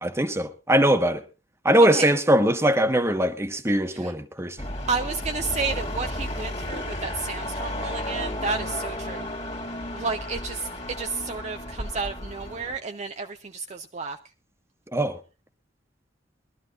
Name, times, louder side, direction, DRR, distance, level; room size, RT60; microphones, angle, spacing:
voice 1, 0.0-1.2 1.6-4.7 14.9-15.2, right 1 dB, 15° right, 1.2 m, -21 dB
sound 1, 4.6-12.8, left 1 dB, 30° left, 2.2 m, -33 dB
voice 2, 4.9-9.3 9.9-14.2, right 4 dB, 35° right, 0.6 m, -31 dB
22.0 x 13.0 x 2.5 m
head